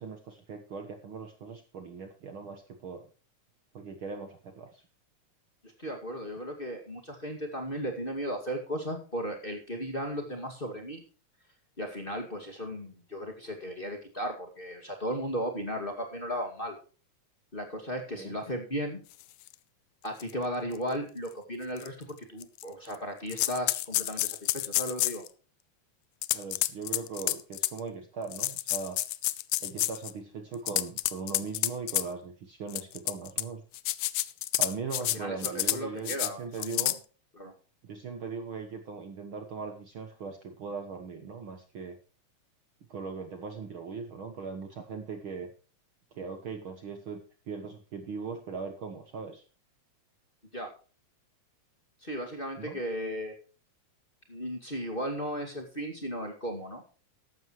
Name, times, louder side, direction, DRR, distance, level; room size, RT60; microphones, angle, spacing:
voice 1, 0.0-3.1 3.7-4.8 18.2-18.3 26.3-29.0 29.6-33.6 34.6-36.9 37.8-42.0 42.9-45.5 46.1-47.2 47.5-49.4 52.6-52.8, right 5 dB, 55° right, 5 dB, 1.7 m, -39 dB
voice 2, 5.8-11.0 11.8-16.8 17.5-19.0 20.0-25.2 35.1-36.9 37.4-37.5 50.5-50.7 52.0-53.4 54.3-56.8, equal, 20° left, 2 dB, 2.1 m, -35 dB
sound 1, 19.5-19.6 20.2-20.3 20.8-20.9 21.8-21.9 22.4-23.0 23.3-25.3 26.2-27.8 28.3-30.1 30.5-32.0 32.7-33.4 33.7-35.2 35.4-35.8 36.1-36.3 36.6-37.0, left 17 dB, 90° left, 2.1 m, -29 dB
14.5 x 12.0 x 3.1 m, 0.37 s
omnidirectional pair, 3.3 m